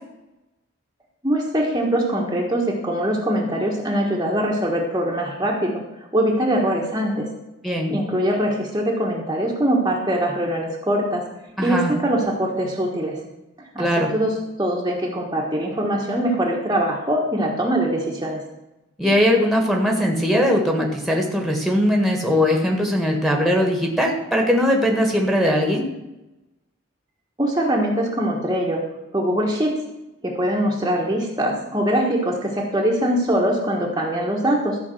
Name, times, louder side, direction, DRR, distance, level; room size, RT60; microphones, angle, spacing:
voice 1, 1.2-5.8 6.1-7.3 7.9-11.2 11.6-13.2 13.7-13.9 14.1-14.3 14.6-18.4 27.4-28.8 29.1-29.7 30.2-34.8, right 1 dB, 20° right, -2 dB, 1.4 m, -22 dB
voice 2, 7.6-8.0 11.6-11.9 13.8-14.1 19.0-25.9, equal, ahead, 0 dB, 1.7 m, -20 dB
13.0 x 5.2 x 7.7 m, 0.97 s
head